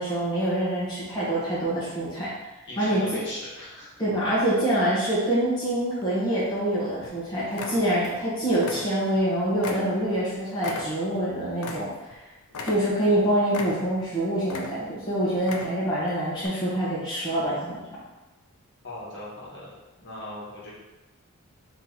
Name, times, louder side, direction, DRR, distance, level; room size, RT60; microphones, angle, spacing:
voice 1, 0.0-2.3 2.8-3.0 4.0-11.9 12.6-17.8, right 1 dB, 20° left, -9 dB, 1.2 m, -25 dB
voice 2, 2.6-4.0 18.8-19.7 20.0-20.7, left 1 dB, 55° left, -7 dB, 1.4 m, -39 dB
sound 1, 6.0-6.7 7.0-7.2 7.5-8.3 8.5-9.3 9.6-12.2 12.5-13.1 13.5-14.1 14.4-15.0 15.4-16.0 16.4-16.5, left 3 dB, 75° left, 0.5 m, -37 dB
3.9 x 3.0 x 3.9 m, 1.1 s
head